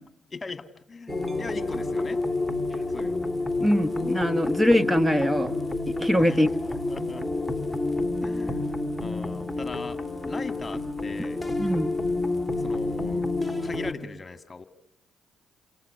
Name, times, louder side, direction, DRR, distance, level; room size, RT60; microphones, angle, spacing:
voice 1, 0.3-2.2 2.9-3.4 6.2-7.3 8.2-11.4 12.5-13.3 13.6-14.6, left 4 dB, 35° left, 11 dB, 2.1 m, -40 dB
sound 1, 1.1-13.9, left 2 dB, 5° left, 2.7 m, -29 dB
voice 2, 3.6-5.5 6.0-6.5 11.6-11.9, equal, 10° right, 13 dB, 1.5 m, -22 dB
29.5 x 28.0 x 6.7 m, 0.73 s
hypercardioid pair, 50°, 0 cm